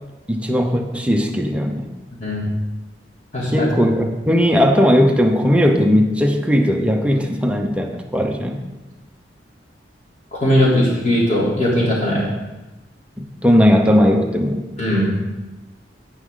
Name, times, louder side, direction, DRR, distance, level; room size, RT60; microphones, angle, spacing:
voice 1, 0.3-1.9 3.5-8.6 13.2-14.6, equal, 5° right, 3 dB, 0.8 m, -17 dB
voice 2, 3.3-3.7 10.3-12.3 14.8-15.1, equal, 40° left, -6 dB, 3.5 m, -18 dB
9.8 x 9.6 x 3.9 m, 1.1 s
head